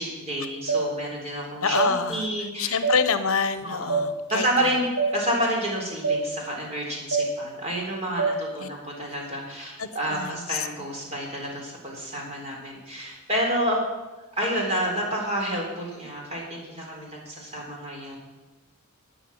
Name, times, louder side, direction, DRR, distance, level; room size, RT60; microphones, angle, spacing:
voice 1, 0.0-2.8 3.6-4.0 4.3-13.8 14.3-18.2, equal, 30° right, -1 dB, 3.9 m, -29 dB
sound 1, 0.7-0.8 1.7-1.9 2.8-3.0 3.9-4.0 5.0-5.1 6.0-6.2 7.1-7.3 8.2-8.3, right 5 dB, 75° right, 2.3 m, -23 dB
voice 2, 1.6-2.3 2.6-4.5 8.6-8.7 9.8-10.7, left 6 dB, 65° left, 11 dB, 0.9 m, -26 dB
13.0 x 9.4 x 7.2 m, 1.1 s
head